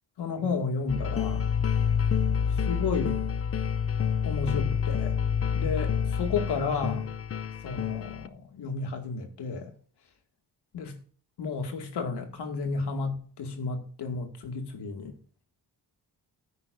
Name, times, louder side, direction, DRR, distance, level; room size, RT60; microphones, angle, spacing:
voice 1, 0.2-1.5 2.6-3.2 4.2-5.2 5.5-7.0 7.6-9.7 10.7-10.9 11.4-15.2, left 4 dB, 75° left, 2.2 m, -32 dB
sound 1, 0.9-8.3, left 7 dB, 35° left, 0.5 m, -28 dB
15.5 x 9.5 x 2.6 m
wide cardioid pair, 145°, 40 cm